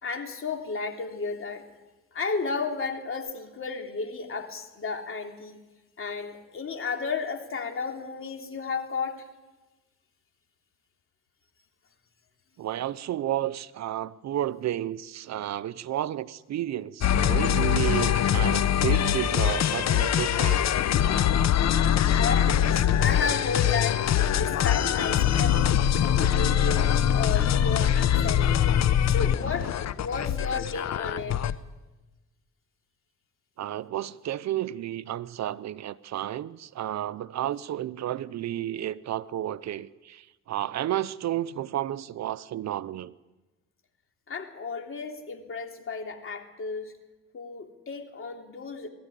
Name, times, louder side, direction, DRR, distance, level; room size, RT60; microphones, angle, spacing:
voice 1, 0.0-1.6 2.1-5.6 6.0-9.2 22.2-24.0 24.3-28.6 29.1-31.5 44.3-46.9 47.3-48.9, left 5 dB, 45° left, 3.2 m, -33 dB
voice 2, 12.6-20.6 33.6-43.1, right 12 dB, 60° right, 0.7 m, -32 dB
sound 1, 17.0-31.6, left 9 dB, 60° left, 0.9 m, -23 dB
21.0 x 13.5 x 10.0 m
cardioid pair, 90°, 30 cm